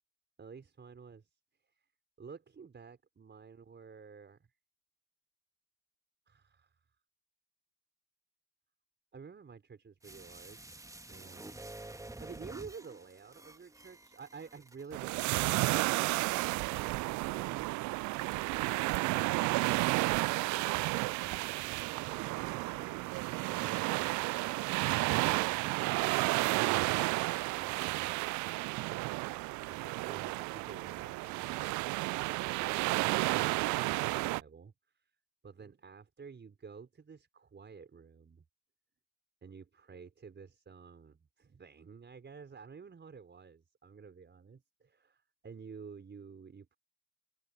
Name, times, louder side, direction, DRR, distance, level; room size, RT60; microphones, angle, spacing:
voice 1, 0.4-1.3 1.7-1.8 2.2-4.5 6.3-6.8 9.1-11.6 12.2-18.1 21.0-27.2 27.6-28.2 29.6-35.1 35.4-38.4 39.4-46.8, right 5 dB, 25° right, 5.0 m, -52 dB
sound 1, 10.0-15.1 15.4-15.5, right 2 dB, 5° right, 2.0 m, -49 dB
sound 2, 14.9-34.4, right 23 dB, 45° right, 0.7 m, -32 dB
open air
figure-of-eight pair, 65°, 43 cm